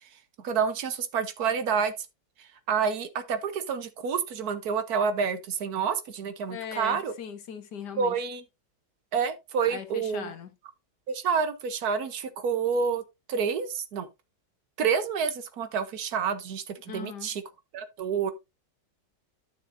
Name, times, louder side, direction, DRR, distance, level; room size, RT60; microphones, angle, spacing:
voice 1, 0.4-1.9 2.4-7.1 8.0-8.4 9.1-10.3 11.1-13.0 13.3-14.1 14.8-17.4 17.7-18.3, right 6 dB, 65° right, 1.3 m, -28 dB
voice 2, 6.5-8.2 9.7-10.5 16.8-17.3, left 7 dB, 70° left, 1.6 m, -39 dB
11.5 x 6.3 x 2.6 m
omnidirectional pair, 1.9 m